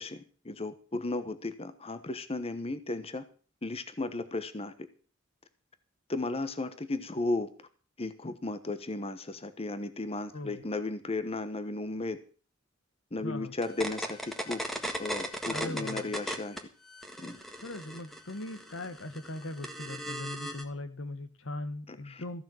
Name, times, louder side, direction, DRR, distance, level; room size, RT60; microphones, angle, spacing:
voice 1, 0.0-3.2 3.6-4.7 6.1-7.5 8.0-12.2 13.1-14.6 15.0-16.6 17.2-17.4 22.1-22.2, left 2 dB, 30° left, 11 dB, 1.1 m, -35 dB
voice 2, 10.3-10.6 13.2-13.5 15.5-16.2 17.6-22.4, left 2 dB, 75° left, 12 dB, 1.5 m, -39 dB
sound 1, 13.6-16.6 16.9-20.6, equal, ahead, 1.6 m, -37 dB
15.0 x 6.7 x 7.7 m, 0.39 s
head